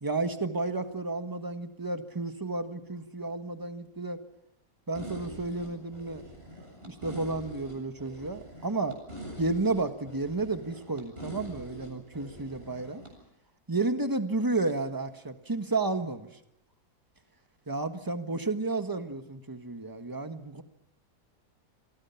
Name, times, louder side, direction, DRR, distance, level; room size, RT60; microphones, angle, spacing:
voice 1, 0.0-4.2 4.9-6.3 6.8-9.0 9.4-13.0 13.7-16.3 17.7-20.6, right 3 dB, 15° right, 7 dB, 1.4 m, -32 dB
sound 1, 4.9-13.1, equal, 35° right, 8.0 m, -44 dB
28.0 x 23.0 x 5.8 m, 0.85 s
omnidirectional pair, 1.7 m